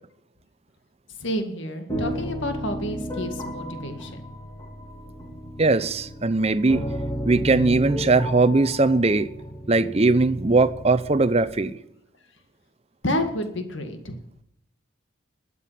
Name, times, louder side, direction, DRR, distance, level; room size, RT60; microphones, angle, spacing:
voice 1, 1.2-4.2 13.0-14.2, left 1 dB, 65° left, 7 dB, 2.1 m, -29 dB
sound 1, 1.9-11.5, equal, 20° left, 3.7 m, -33 dB
voice 2, 5.6-6.8 7.2-9.3 9.7-11.7, right 3 dB, 30° right, 13 dB, 0.6 m, -20 dB
12.5 x 8.5 x 7.5 m, 0.76 s
head